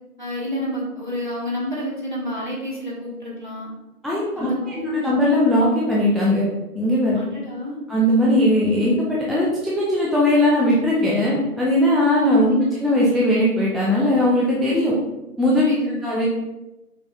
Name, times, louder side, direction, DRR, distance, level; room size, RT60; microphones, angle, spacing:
voice 1, 0.2-3.7 4.3-5.0 7.1-7.8 12.4-12.7 15.6-16.1, left 1 dB, 30° right, -6 dB, 1.0 m, -29 dB
voice 2, 4.0-6.5 6.7-7.2 7.9-14.9 15.4-15.7 16.0-16.2, left 1 dB, ahead, -6 dB, 0.4 m, -19 dB
5.6 x 3.6 x 2.5 m, 1.0 s
figure-of-eight pair, 170°, 47 cm